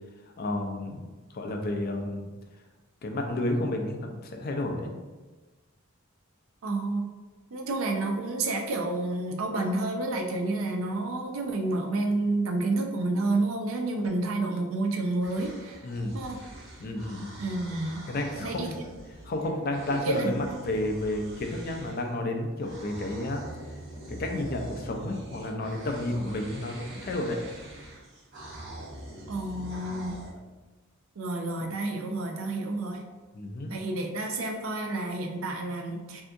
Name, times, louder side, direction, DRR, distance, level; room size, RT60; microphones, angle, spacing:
voice 1, 0.4-1.1 1.3-2.3 3.0-4.9 15.8-16.2 16.8-17.3 18.1-18.7 19.2-23.4 24.1-27.4 33.3-33.7, left 1 dB, 50° left, 3 dB, 0.4 m, -31 dB
voice 2, 6.6-7.1 7.5-15.8 16.1-16.4 17.4-18.0 18.3-18.8 19.9-20.6 29.3-30.2 31.2-33.0 33.7-36.2, right 2 dB, 85° right, 2 dB, 0.5 m, -30 dB
sound 1, 15.2-22.1 22.6-30.3, right 1 dB, 65° right, 0.9 m, -44 dB
3.4 x 2.7 x 2.6 m, 1.2 s
head